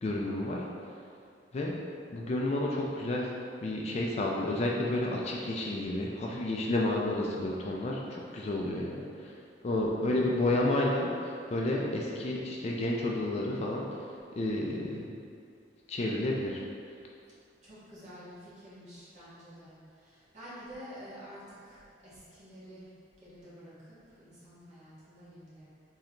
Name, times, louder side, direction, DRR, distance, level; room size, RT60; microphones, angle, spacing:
voice 1, 0.0-0.6 1.5-1.8 2.1-3.3 3.6-9.4 9.6-15.1 15.9-16.6, left 1 dB, 35° left, -2 dB, 0.3 m, -31 dB
voice 2, 9.9-10.5 17.6-22.8 23.2-25.6, equal, 40° right, -10 dB, 1.3 m, -49 dB
3.8 x 3.2 x 2.9 m, 2.4 s
head